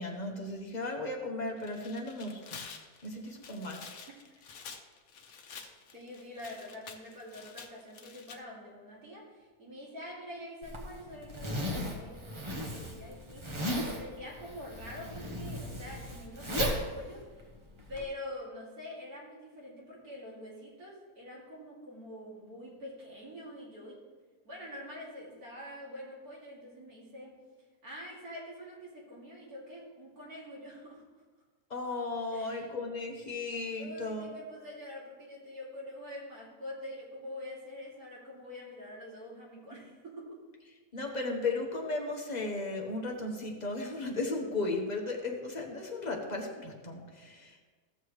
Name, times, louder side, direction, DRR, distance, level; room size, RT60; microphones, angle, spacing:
voice 1, 0.0-2.6 3.0-3.9 31.7-34.3 40.9-47.6, left 2 dB, 30° left, 1 dB, 1.1 m, -35 dB
Tearing, 1.5-8.4, left 6 dB, 70° left, 1.3 m, -49 dB
voice 2, 5.9-17.5 17.9-24.0 24.4-27.4 27.8-31.0 32.3-32.7 33.8-40.4, left 1 dB, 75° right, -5 dB, 3.0 m, -45 dB
Zipper (clothing), 10.6-18.0, equal, 20° right, 1.0 m, -36 dB
15.0 x 6.9 x 3.1 m, 1.4 s
omnidirectional pair, 1.6 m